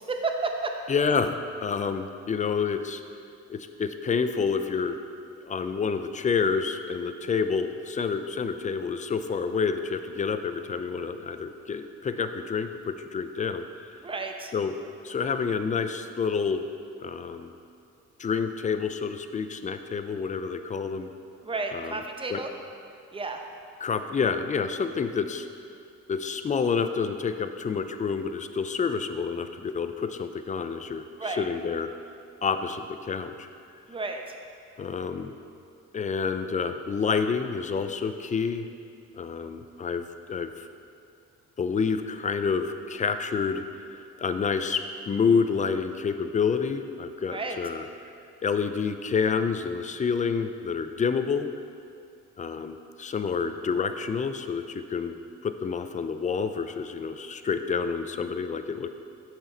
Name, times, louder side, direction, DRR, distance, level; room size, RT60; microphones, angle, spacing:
voice 1, 0.1-0.7 14.0-14.5 21.4-22.5 23.1-23.4 31.2-31.5 33.9-34.3 47.3-47.6, right 3 dB, 20° right, 4 dB, 0.7 m, -31 dB
voice 2, 0.9-3.0 3.5-5.0 5.4-13.6 14.5-14.7 15.0-16.6 17.0-17.5 18.2-21.1 21.7-22.0 22.3-22.4 23.8-25.5 26.1-31.9 32.4-33.5 34.8-35.3 35.9-38.7 39.2-40.7 41.6-47.9 48.4-51.5 52.4-55.2 55.4-58.9, left 5 dB, 25° left, 9 dB, 0.4 m, -28 dB
6.9 x 6.0 x 3.9 m, 2.4 s
cardioid pair, 90°, 30 cm